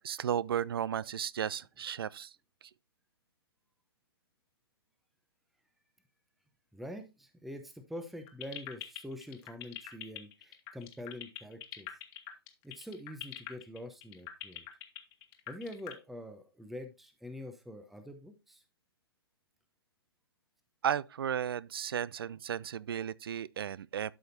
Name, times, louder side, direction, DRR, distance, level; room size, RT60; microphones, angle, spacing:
voice 1, 0.0-2.3 20.8-24.1, right 9 dB, 65° right, 0.4 m, -34 dB
voice 2, 6.7-11.9 12.6-14.6 15.5-18.6, left 1 dB, ahead, 0.6 m, -45 dB
sound 1, 8.3-15.9, left 16 dB, 30° left, 1.2 m, -42 dB
12.0 x 5.1 x 2.6 m
figure-of-eight pair, 130°, 13 cm